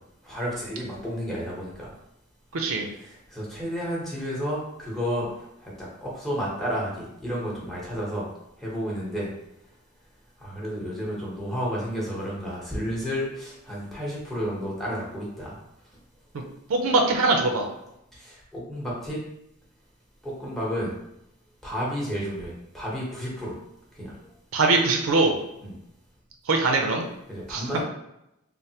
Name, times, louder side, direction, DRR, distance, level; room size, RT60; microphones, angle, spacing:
voice 1, 0.2-1.9 2.7-8.3 8.6-9.3 10.4-15.6 18.1-19.2 20.2-20.9 21.6-23.6 23.9-24.1 25.6-25.7 27.3-27.8, equal, ahead, -5 dB, 0.8 m, -31 dB
voice 2, 2.5-2.9 16.3-16.4 16.7-17.7 24.5-25.3 26.5-27.1 27.5-27.6, right 3 dB, 85° right, 3 dB, 0.5 m, -22 dB
3.2 x 2.0 x 2.7 m, 0.84 s
head